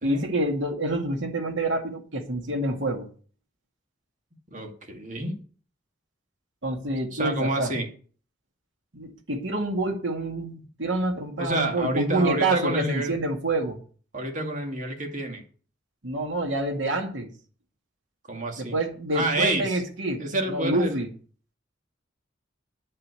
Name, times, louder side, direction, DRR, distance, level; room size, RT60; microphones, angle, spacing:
voice 1, 0.0-3.1 6.6-7.7 8.9-13.8 16.0-17.3 18.6-21.1, right 2 dB, 80° right, 1 dB, 2.3 m, -27 dB
voice 2, 4.5-5.4 7.1-7.9 11.4-13.2 14.1-15.4 18.3-18.7 19.1-19.8 20.2-21.0, right 1 dB, 40° right, 3 dB, 2.4 m, -28 dB
10.5 x 5.6 x 8.3 m, 0.42 s
head